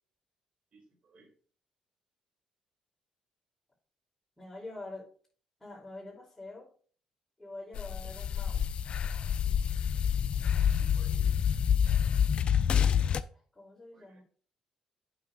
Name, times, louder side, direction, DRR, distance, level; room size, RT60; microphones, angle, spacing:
voice 1, 0.7-1.3 10.8-11.3 11.8-12.4 13.9-14.2, right 3 dB, 50° right, 3 dB, 2.7 m, -59 dB
voice 2, 4.4-5.1 5.6-6.7 7.4-8.7 13.3-14.2, left 2 dB, 5° left, -7 dB, 2.8 m, -45 dB
sound 1, 7.7-13.2, left 8 dB, 55° left, 0.4 m, -27 dB
8.5 x 6.1 x 2.4 m, 0.43 s
supercardioid pair, 60°, 2 cm